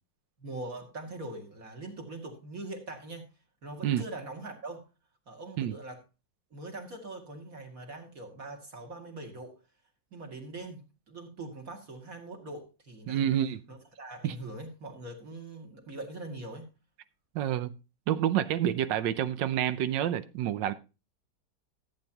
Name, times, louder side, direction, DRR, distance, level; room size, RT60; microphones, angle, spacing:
voice 1, 0.4-3.3 3.6-4.9 5.3-6.0 6.5-9.5 10.1-13.2 13.7-16.7, right 2 dB, 50° right, 2.6 m, -42 dB
voice 2, 13.1-13.6 14.2-14.3 17.3-17.7 18.1-20.7, right 11 dB, 90° right, 1.4 m, -28 dB
14.5 x 8.5 x 2.9 m
omnidirectional pair, 1.9 m